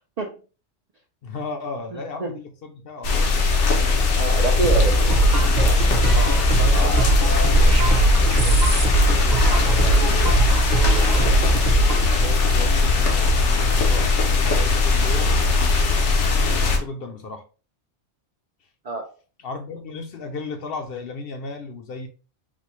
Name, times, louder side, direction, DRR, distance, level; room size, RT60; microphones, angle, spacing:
voice 1, 1.2-3.4 6.1-10.4 11.1-15.5 16.2-17.4 19.4-22.1, left 3 dB, 65° left, 0.7 m, -35 dB
voice 2, 1.9-2.4 3.8-5.1 6.7-7.1 11.1-11.4 18.8-19.1, right 2 dB, 60° right, 0.4 m, -27 dB
sound 1, 3.0-16.8, left 3 dB, 80° left, 1.1 m, -19 dB
sound 2, 4.6-12.1, right 4 dB, 45° right, 0.8 m, -21 dB
4.2 x 2.1 x 2.9 m
omnidirectional pair, 1.2 m